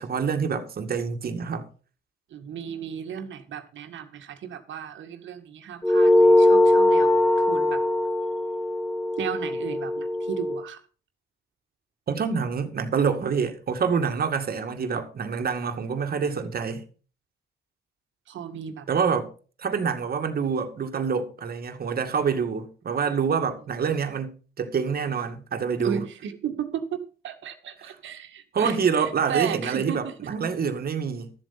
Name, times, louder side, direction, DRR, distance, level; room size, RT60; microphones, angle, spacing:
voice 1, 0.0-1.7 12.1-16.8 18.9-19.3 19.6-26.0 27.8-27.9 28.5-31.3, right 6 dB, 50° right, 2.1 m, -26 dB
voice 2, 2.3-7.8 9.2-10.8 18.3-18.9 25.8-30.2, right 8 dB, 70° right, 1.9 m, -34 dB
sound 1, 5.8-10.6, left 1 dB, 5° left, 1.0 m, -21 dB
13.0 x 7.8 x 5.8 m
cardioid pair, 90°, 20 cm